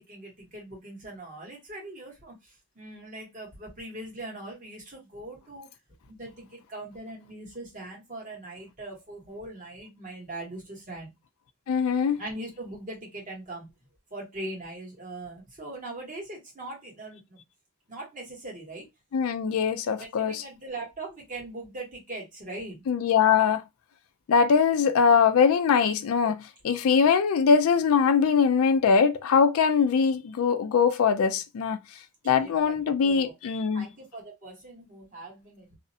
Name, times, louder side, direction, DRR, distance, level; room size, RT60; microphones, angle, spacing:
voice 1, 0.0-5.7 6.1-11.1 12.2-13.7 14.1-17.4 17.9-18.9 20.0-22.9 26.2-26.4 32.2-33.3 33.7-35.8, right 2 dB, 35° right, 1.1 m, -41 dB
voice 2, 11.7-12.2 19.1-20.4 22.9-23.6 24.3-26.3 26.6-31.8 32.3-33.9, left 6 dB, 65° left, 0.3 m, -22 dB
2.4 x 2.0 x 2.6 m
head